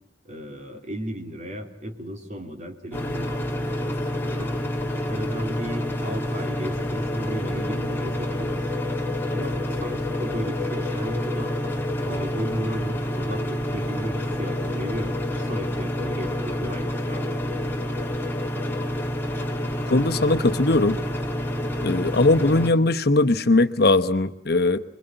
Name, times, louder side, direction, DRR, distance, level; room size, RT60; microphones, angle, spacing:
voice 1, 0.2-4.5 5.1-8.6 9.3-11.5 12.0-17.4, right 1 dB, 45° right, 3 dB, 3.4 m, -35 dB
sound 1, 2.9-22.7, left 1 dB, 15° left, 2.4 m, -28 dB
voice 2, 19.9-21.0 21.8-24.8, left 2 dB, 60° left, 9 dB, 1.0 m, -20 dB
26.0 x 22.5 x 9.1 m, 0.75 s
head